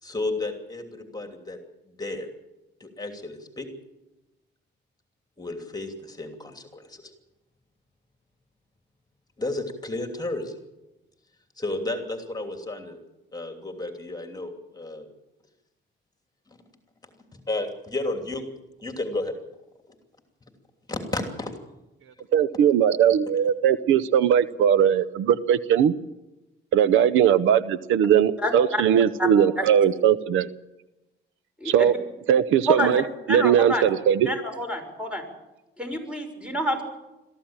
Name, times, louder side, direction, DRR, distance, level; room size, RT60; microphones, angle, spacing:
voice 1, 0.0-1.6 2.0-2.3 2.8-3.7 5.4-7.1 9.4-10.5 11.6-13.0 13.3-15.1 17.5-18.4 18.8-19.3 20.9-21.5, left 2 dB, 20° left, 5 dB, 2.9 m, -32 dB
voice 2, 22.3-25.9 26.7-30.5 31.6-31.9 32.3-33.0 33.3-34.3, right 9 dB, 85° right, 16 dB, 0.8 m, -20 dB
voice 3, 28.4-28.8 29.2-29.3 29.6-29.7 31.6-31.9 32.7-33.0 33.3-33.8 34.2-35.2 35.8-36.8, equal, 5° right, 4 dB, 6.2 m, -27 dB
22.0 x 14.5 x 8.9 m, 1.0 s
cardioid pair, 90°, 20 cm